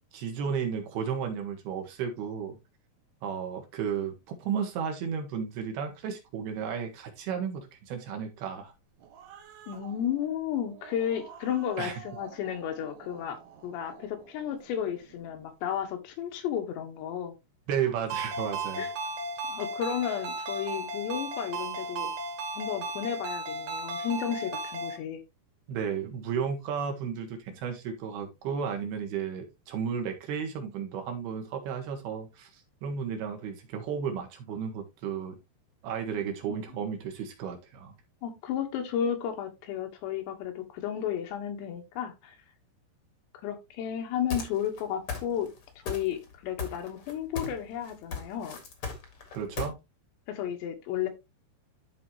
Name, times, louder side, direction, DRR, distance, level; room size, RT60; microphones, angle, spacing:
voice 1, 0.1-2.6 3.2-4.2 4.4-8.7 11.8-11.9 17.7-18.8 25.7-35.4 35.8-37.9 49.3-49.8, right 7 dB, 70° right, 4 dB, 2.9 m, -33 dB
Growling, 8.7-15.5, right 8 dB, 85° right, 3.8 m, -51 dB
voice 2, 9.7-17.4 18.8-18.9 19.5-22.1 22.6-25.2 36.2-36.5 38.2-42.4 43.4-45.5 45.8-48.6 50.3-51.1, left 9 dB, 80° left, 6 dB, 3.2 m, -33 dB
Ringtone, 18.1-25.0, right 2 dB, 55° right, 2.6 m, -35 dB
sound 1, 44.3-44.8 45.1-45.6 45.9-46.3 46.6-47.6 47.9-49.7, left 5 dB, 50° left, 1.6 m, -35 dB
12.5 x 4.2 x 2.8 m, 0.23 s
omnidirectional pair, 5.1 m